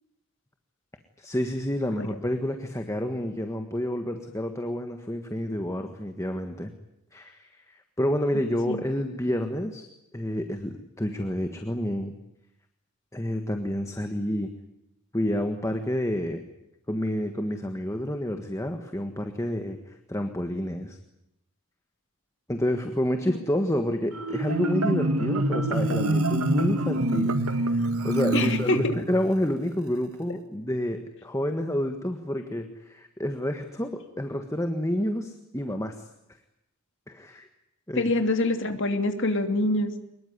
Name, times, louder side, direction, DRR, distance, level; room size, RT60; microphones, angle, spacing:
voice 1, 1.2-6.7 7.1-9.9 10.1-12.1 13.1-14.5 15.1-16.4 16.9-21.0 22.5-35.9 37.1-37.5 37.9-38.1, left 1 dB, 15° left, 6 dB, 1.6 m, -29 dB
Marimba xylophone, 24.1-29.2, right 1 dB, 85° right, 2.0 m, -26 dB
voice 2, 28.3-28.9 38.0-39.9, left 2 dB, 55° left, 7 dB, 2.8 m, -25 dB
24.5 x 21.5 x 9.6 m, 0.85 s
head